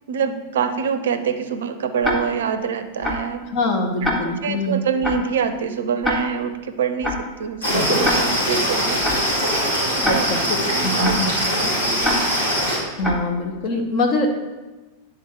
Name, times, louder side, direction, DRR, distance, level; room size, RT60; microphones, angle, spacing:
voice 1, 0.1-3.4 4.4-9.3 9.8-12.2 13.7-13.9, right 6 dB, 60° right, 8 dB, 0.5 m, -26 dB
Tick-tock, 2.0-2.2 3.0-3.2 4.0-4.2 5.0-5.2 6.0-6.2 7.0-7.2 8.0-8.2 9.0-9.2 10.0-10.2 11.0-11.2 12.0-12.2 13.0-13.2, left 1 dB, 15° left, 1.1 m, -23 dB
voice 2, 3.5-4.8 10.0-11.3 13.0-14.3, left 2 dB, 40° left, 3 dB, 0.9 m, -23 dB
sound 1, 7.6-12.8, equal, 70° left, 2.4 m, -22 dB
9.4 x 3.8 x 4.4 m, 1.2 s
figure-of-eight pair, 90°, 0 cm